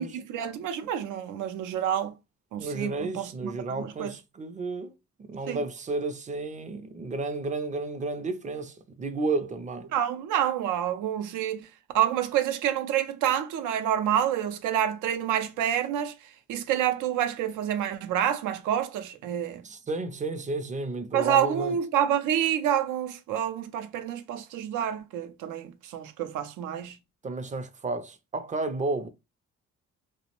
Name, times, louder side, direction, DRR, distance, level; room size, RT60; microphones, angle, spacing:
voice 1, 0.0-2.1 2.5-4.1 5.5-5.6 9.9-11.7 11.9-16.1 16.5-19.6 21.1-27.0, right 10 dB, 85° right, 0.5 m, -28 dB
voice 2, 2.6-9.9 19.6-21.8 27.2-29.1, right 3 dB, 25° right, 0.4 m, -32 dB
2.4 x 2.1 x 2.8 m
cardioid pair, 90°, 30 cm